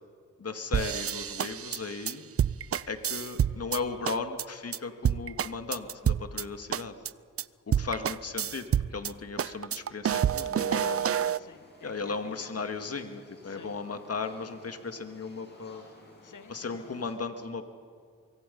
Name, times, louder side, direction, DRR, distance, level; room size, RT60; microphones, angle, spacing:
voice 1, 0.4-2.3 2.9-6.9 7.8-11.1 11.8-15.9 16.5-17.6, left 4 dB, 45° left, 7 dB, 2.1 m, -36 dB
sound 1, 0.7-3.8 4.0-4.4 4.7-4.8 5.0-6.4 6.7-7.1 7.4-7.5 7.7-9.1 9.4-11.4, right 9 dB, 45° right, 0.5 m, -28 dB
voice 2, 10.7-12.5 13.4-13.8 16.2-17.0, left 6 dB, 65° left, 10 dB, 1.6 m, -49 dB
sound 2, 11.1-17.1, left 2 dB, 30° left, 7.4 m, -54 dB
25.0 x 23.5 x 5.5 m, 2.1 s
cardioid pair, 65°, 33 cm